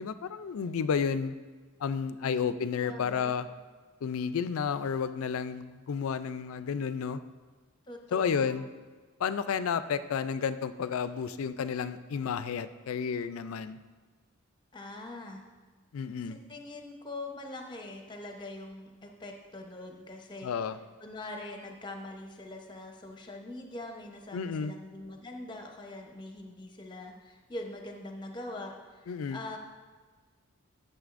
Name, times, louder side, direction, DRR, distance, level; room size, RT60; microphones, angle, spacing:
voice 1, 0.0-1.3 1.8-3.5 4.0-7.2 8.1-8.7 9.2-13.8 15.9-16.4 20.4-20.8 24.3-24.7 29.1-29.4, left 6 dB, 75° left, 13 dB, 0.4 m, -31 dB
voice 2, 2.2-3.4 7.9-8.6 14.7-15.4 16.3-20.5 21.0-29.6, left 2 dB, 20° left, 2 dB, 0.8 m, -43 dB
12.5 x 6.7 x 2.5 m, 1.4 s
head